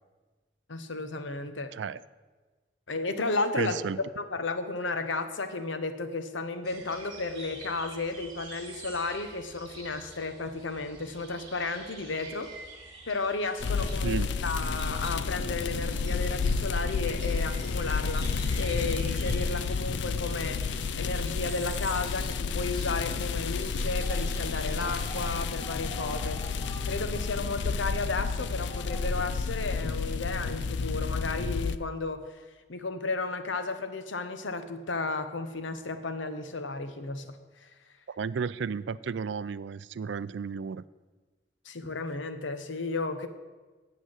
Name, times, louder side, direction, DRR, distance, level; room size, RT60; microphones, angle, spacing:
voice 1, 0.7-1.8 2.9-12.5 13.1-18.3 18.6-20.6 20.9-26.4 26.9-32.2 32.7-37.3 37.6-37.7 41.6-43.3, left 3 dB, 90° left, 9 dB, 1.0 m, -33 dB
voice 2, 3.6-4.0 14.0-14.3 38.1-40.8, right 6 dB, 75° right, 18 dB, 0.4 m, -33 dB
sound 1, 6.6-25.4, right 3 dB, 20° right, 2.2 m, -48 dB
sound 2, 13.6-31.8, left 4 dB, 75° left, 0.4 m, -31 dB
sound 3, 24.0-29.0, equal, 25° left, 1.7 m, -46 dB
8.9 x 7.8 x 7.8 m, 1.3 s
head